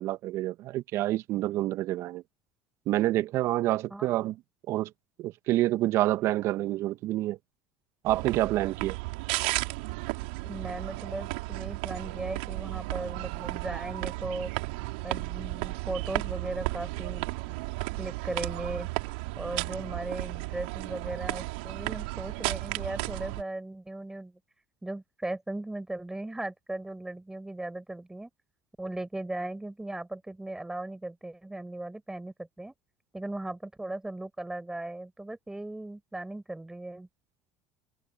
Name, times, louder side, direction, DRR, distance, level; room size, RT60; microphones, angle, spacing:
voice 1, 0.0-2.2 2.9-4.3 4.7-4.9 5.2-7.4 8.0-9.0, right 15 dB, 55° right, 1.3 m, -27 dB
sound 1, 8.0-23.4, right 27 dB, 70° right, 3.7 m, -34 dB
voice 2, 10.4-14.5 15.0-17.3 18.0-18.9 19.4-24.3 24.8-28.3 28.8-32.7 33.1-37.1, right 2 dB, 10° right, 6.8 m, -37 dB
hypercardioid pair, 70°, 6 cm